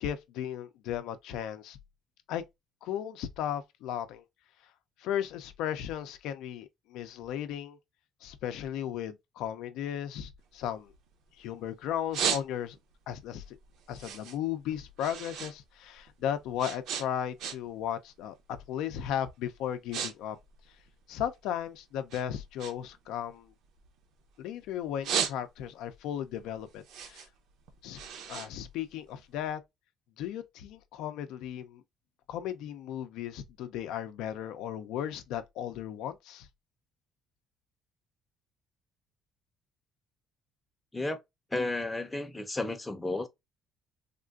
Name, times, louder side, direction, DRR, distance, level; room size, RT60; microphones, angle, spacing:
voice 1, 0.0-1.8 2.3-2.4 2.8-4.2 5.0-7.8 8.2-10.9 11.4-12.8 13.1-13.6 13.9-18.4 18.7-20.4 21.1-23.5 24.4-27.3 27.8-28.0 28.3-29.6 30.2-31.8 32.3-36.5, left 10 dB, 85° left, 0.5 m, -35 dB
sound 1, 10.4-11.5 11.9-12.9 13.3-15.6 15.8-17.9 18.2-18.5 19.1-19.3 19.6-20.1 20.4-21.6 22.1-24.4 24.8-25.8 26.3-29.4, right 7 dB, 70° right, 0.7 m, -36 dB
voice 2, 41.5-43.3, left 2 dB, 10° left, 0.5 m, -32 dB
3.6 x 2.5 x 2.3 m
cardioid pair, 145°, 0 cm